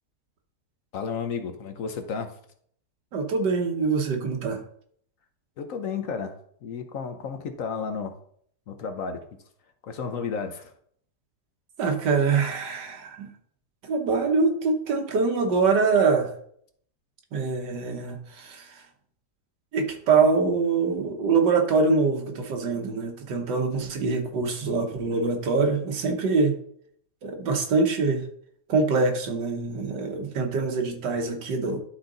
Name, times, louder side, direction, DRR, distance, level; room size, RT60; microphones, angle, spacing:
voice 1, 0.9-2.3 5.6-6.3 6.6-8.1 8.7-9.2 9.8-10.7, left 5 dB, 60° left, 7 dB, 1.0 m, -32 dB
voice 2, 3.1-4.6 11.8-13.3 13.8-16.3 17.3-18.8 19.7-26.6 27.2-28.3 28.7-31.8, right 4 dB, 85° right, 3 dB, 1.8 m, -24 dB
11.5 x 4.0 x 3.9 m, 0.64 s
omnidirectional pair, 1.8 m